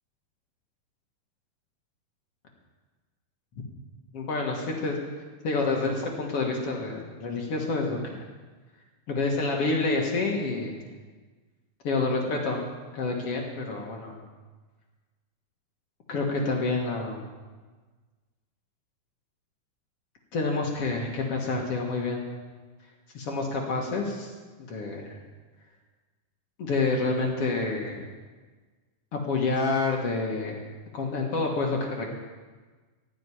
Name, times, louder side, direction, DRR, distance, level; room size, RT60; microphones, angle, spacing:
voice 1, 4.1-5.0 5.4-8.2 9.1-10.8 11.8-12.6 12.9-14.1 16.1-17.3 20.3-22.3 23.1-24.3 24.7-25.1 26.6-28.1 29.1-30.6 30.9-32.1, left 3 dB, 55° left, 0 dB, 1.8 m, -28 dB
15.5 x 6.4 x 10.0 m, 1.4 s
omnidirectional pair, 4.8 m